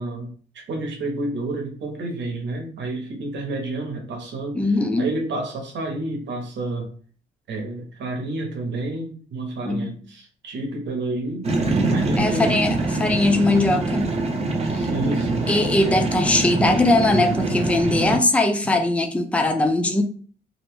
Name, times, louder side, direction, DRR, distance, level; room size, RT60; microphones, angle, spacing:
voice 1, 0.0-4.6 5.0-6.9 7.5-11.5 11.9-12.7 14.7-15.5, right 2 dB, 65° right, 2 dB, 0.9 m, -29 dB
voice 2, 4.5-5.1 9.7-9.9 12.2-14.1 14.7-14.9 15.5-20.0, left 2 dB, 5° left, 5 dB, 0.4 m, -20 dB
sound 1, 11.4-18.2, right 2 dB, 35° right, 0.7 m, -24 dB
2.6 x 2.1 x 3.1 m, 0.43 s
cardioid pair, 90°, 20 cm